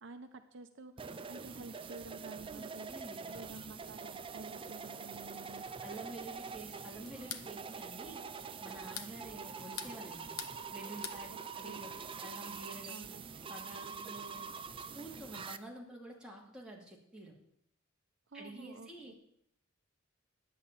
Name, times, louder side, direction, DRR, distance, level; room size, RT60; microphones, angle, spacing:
voice 1, 0.0-2.9 3.3-5.6 11.3-11.8 12.9-13.3 18.3-19.1, right 3 dB, 60° right, 8 dB, 0.7 m, -51 dB
sound 1, 1.0-15.6, right 5 dB, 25° right, 0.5 m, -45 dB
voice 2, 2.5-3.4 5.8-10.4 10.7-11.9 12.2-13.0 13.4-14.5 14.9-17.4 18.3-19.2, right 1 dB, 5° right, -3 dB, 2.4 m, -49 dB
sound 2, 7.1-7.5 8.7-9.1 9.6-10.6 10.8-11.2, left 9 dB, 85° left, 0.9 m, -43 dB
10.5 x 8.6 x 7.3 m, 0.73 s
head